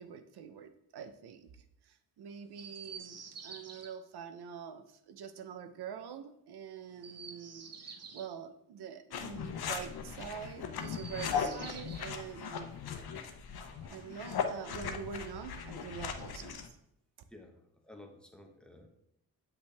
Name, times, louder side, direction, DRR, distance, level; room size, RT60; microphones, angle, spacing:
voice 1, 0.0-1.5 1.8-12.7 13.9-16.7, right 7 dB, 85° right, 9 dB, 0.7 m, -45 dB
Chirp tweet, 2.5-3.9 6.9-8.3 10.7-12.1 13.6-14.6 15.7-16.6, right 5 dB, 40° right, 0.8 m, -50 dB
sound 1, 9.1-16.7, left 6 dB, 75° left, 0.8 m, -38 dB
voice 2, 17.3-18.9, left 1 dB, ahead, 3 dB, 1.1 m, -53 dB
8.3 x 5.4 x 3.4 m, 0.76 s
cardioid pair, 100°, 38 cm